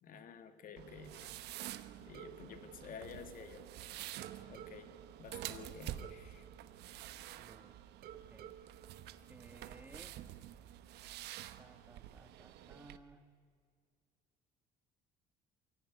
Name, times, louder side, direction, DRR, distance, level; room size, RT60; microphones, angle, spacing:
voice 1, 0.0-1.3 2.0-3.6 4.5-4.9 5.2-6.5, left 6 dB, 55° left, 9 dB, 2.0 m, -51 dB
sound 1, 0.8-13.0, right 13 dB, 80° right, 1.1 m, -49 dB
sound 2, 2.1-3.7 4.2-7.6 8.0-10.0, right 10 dB, 65° right, 1.4 m, -56 dB
voice 2, 7.4-7.7 8.1-8.5 9.3-10.2 11.6-13.3, right 2 dB, 10° right, 8 dB, 1.9 m, -58 dB
23.5 x 16.5 x 9.7 m, 2.1 s
cardioid pair, 110°, 17 cm